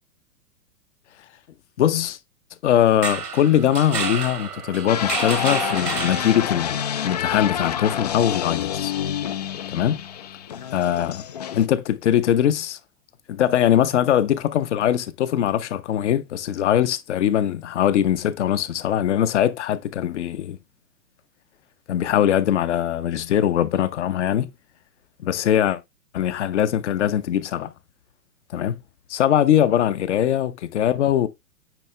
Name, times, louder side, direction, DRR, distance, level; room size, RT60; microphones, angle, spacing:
voice 1, 1.8-2.2 2.6-8.9 9.7-10.0 10.7-11.2 11.5-12.8 13.3-20.6 21.9-24.5 25.2-25.8 26.1-27.7 28.5-28.8 29.1-31.3, left 10 dB, 50° left, 0.8 m, -21 dB
sound 1, 2.9-6.8, right 5 dB, 80° right, 1.7 m, -30 dB
sound 2, 4.9-11.7, left 9 dB, 30° left, 0.4 m, -28 dB
9.2 x 4.2 x 3.2 m
figure-of-eight pair, 110°, 46 cm